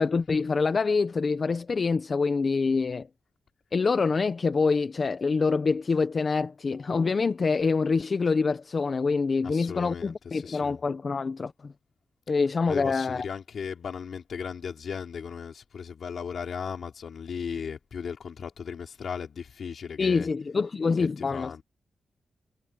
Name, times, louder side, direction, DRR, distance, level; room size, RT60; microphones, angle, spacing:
voice 1, 0.0-3.1 3.7-11.7 12.3-13.2 20.0-21.6, left 4 dB, 45° left, 1.1 m, -26 dB
voice 2, 9.4-10.8 12.7-20.3 21.2-21.6, left 6 dB, 65° left, 5.1 m, -36 dB
cardioid pair, 75°, 0 cm